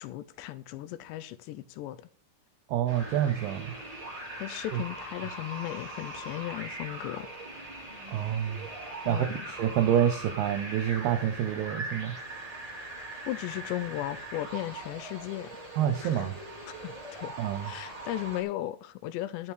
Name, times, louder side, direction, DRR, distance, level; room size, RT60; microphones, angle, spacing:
voice 1, 0.0-2.0 4.1-7.3 9.1-9.6 13.3-15.6 16.0-16.3 16.7-17.3 17.6-19.5, left 14 dB, 85° left, 2.5 m, -36 dB
voice 2, 2.7-3.7 8.1-8.7 9.1-12.1 15.8-16.3 17.4-17.7, right 10 dB, 75° right, 2.4 m, -27 dB
sound 1, 2.9-18.4, right 2 dB, 15° right, 1.5 m, -41 dB
11.0 x 9.1 x 4.7 m
omnidirectional pair, 5.6 m